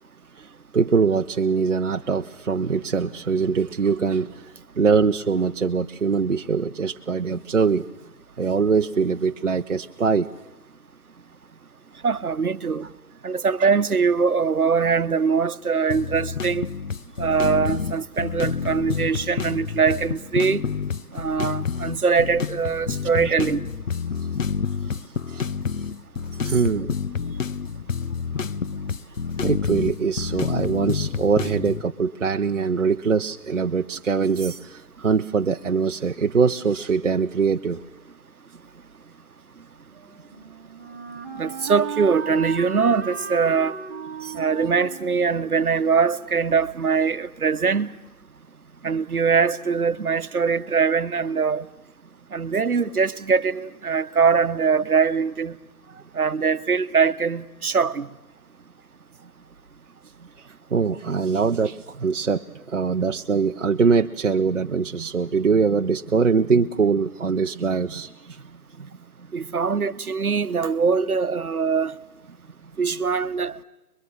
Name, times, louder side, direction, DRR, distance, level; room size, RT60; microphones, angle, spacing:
voice 1, 0.7-7.8 8.4-10.3 13.6-13.7 23.2-23.3 25.3-25.5 26.4-27.0 29.4-37.8 44.2-44.3 55.9-56.0 60.7-68.4 68.8-68.9, right 5 dB, 55° right, 0.7 m, -23 dB
voice 2, 12.0-12.9 13.2-16.7 17.2-20.6 21.1-23.6 41.4-43.8 44.3-47.9 48.8-51.7 52.3-55.6 56.1-58.1 69.3-71.9 72.8-73.6, right 5 dB, 70° right, 1.0 m, -22 dB
sound 1, 15.9-31.8, left 6 dB, 60° left, 0.7 m, -28 dB
Wind instrument woodwind instrument, 39.9-46.7, right 6 dB, 10° right, 1.6 m, -36 dB
22.5 x 22.5 x 7.6 m
figure-of-eight pair, 160°, 45 cm